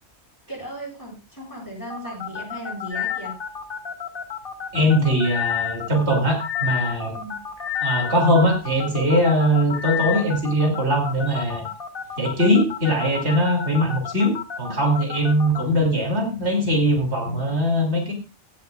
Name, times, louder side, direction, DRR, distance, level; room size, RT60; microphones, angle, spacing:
voice 1, 0.5-3.3 7.1-7.3, right 1 dB, 15° left, -4 dB, 7.6 m, -36 dB
sound 1, 1.9-15.6, left 7 dB, 55° left, 1.3 m, -32 dB
sound 2, 2.9-3.3 5.2-5.8 6.4-6.9 7.6-8.1 9.7-10.2, left 11 dB, 35° left, 2.0 m, -27 dB
voice 2, 4.7-7.1 7.8-11.7 12.2-18.1, equal, 75° right, 2 dB, 3.1 m, -21 dB
16.0 x 10.5 x 2.4 m, 0.30 s
omnidirectional pair, 1.1 m